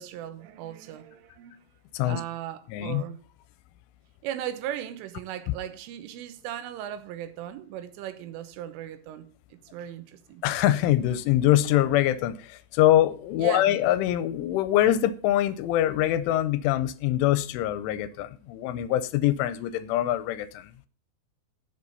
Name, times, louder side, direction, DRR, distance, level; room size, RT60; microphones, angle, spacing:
voice 1, 0.0-1.7 2.0-3.2 4.2-10.4 13.4-13.8, right 11 dB, 85° right, 3.5 m, -37 dB
voice 2, 2.7-3.0 10.4-20.7, left 13 dB, 80° left, 3.1 m, -24 dB
9.6 x 8.2 x 5.5 m
omnidirectional pair, 5.6 m